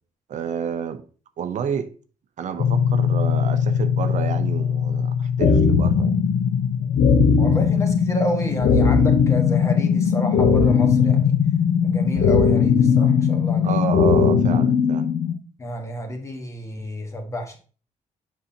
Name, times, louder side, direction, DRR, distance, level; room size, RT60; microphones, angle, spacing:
voice 1, 0.3-1.0 1.4-1.9 2.4-6.2 13.0-13.1 13.6-15.1, right 7 dB, 60° right, 0.6 m, -29 dB
sound 1, 2.6-12.3, left 7 dB, 60° left, 0.4 m, -26 dB
sound 2, 5.4-15.4, left 6 dB, 85° left, 0.9 m, -18 dB
voice 2, 7.4-11.3 11.8-13.7 15.6-17.6, left 1 dB, 20° left, 1.3 m, -30 dB
7.8 x 5.5 x 2.8 m
wide cardioid pair, 170°, 14 cm